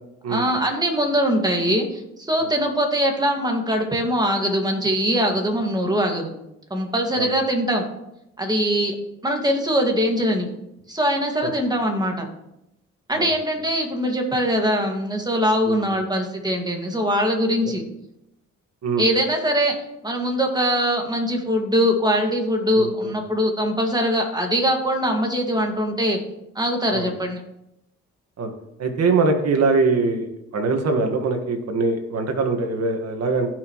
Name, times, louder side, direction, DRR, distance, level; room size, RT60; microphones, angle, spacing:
voice 1, 0.3-6.3 6.7-7.9 8.4-8.9 9.2-10.5 10.9-12.3 13.1-17.8 19.0-19.8 20.0-26.2 26.6-27.4, equal, 15° right, 2 dB, 2.1 m, -22 dB
voice 2, 22.8-23.2 26.9-27.1 28.4-28.5 28.8-33.5, right 3 dB, 60° right, 5 dB, 1.8 m, -23 dB
16.0 x 6.1 x 3.2 m, 0.85 s
cardioid pair, 90°, 30 cm